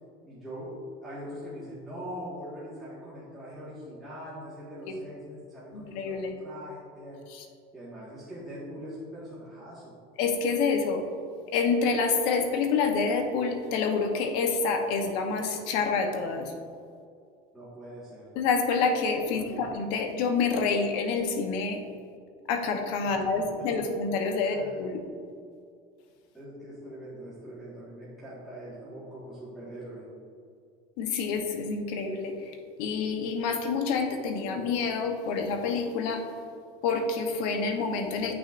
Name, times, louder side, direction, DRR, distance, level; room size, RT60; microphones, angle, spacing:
voice 1, 0.2-7.2 7.7-9.9 17.5-18.3 19.3-19.7 23.0-23.7 24.4-24.8 26.3-30.0, equal, ahead, -10 dB, 1.6 m, -42 dB
voice 2, 5.7-6.3 7.3-7.4 10.2-11.1 11.5-16.5 18.4-21.8 22.5-25.0 31.0-36.3 36.8-38.3, left 4 dB, 75° left, 5 dB, 1.0 m, -28 dB
9.7 x 6.1 x 2.5 m, 2.3 s
cardioid pair, 140°, 19 cm